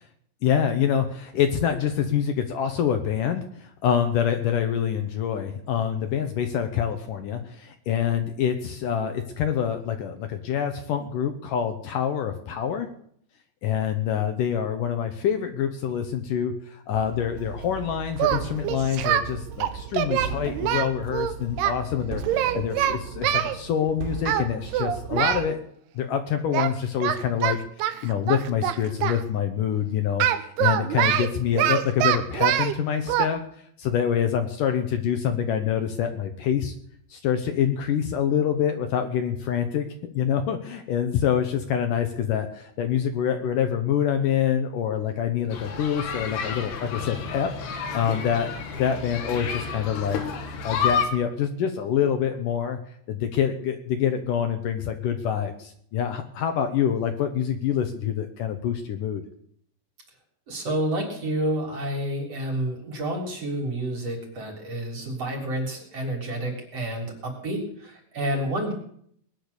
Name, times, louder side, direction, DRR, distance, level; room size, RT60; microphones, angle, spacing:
voice 1, 0.4-12.9 13.6-25.6 26.0-33.4 33.8-36.7 37.1-39.9 40.1-50.2 50.6-52.8 53.1-59.2, left 8 dB, 70° left, 6 dB, 2.4 m, -26 dB
sound 1, 16.9-25.5, right 6 dB, 75° right, 4.2 m, -37 dB
Singing, 18.2-19.3 19.6-21.7 22.2-23.6 24.3-24.5 24.7-25.5 26.5-26.7 27.0-29.2 30.2-32.7 33.1-33.3, right 11 dB, 90° right, 3.0 m, -24 dB
sound 2, 45.5-51.0, left 6 dB, 90° left, 3.9 m, -30 dB
voice 2, 60.5-68.7, right 1 dB, 40° right, 1 dB, 4.5 m, -29 dB
20.0 x 10.0 x 6.8 m, 0.65 s
omnidirectional pair, 4.4 m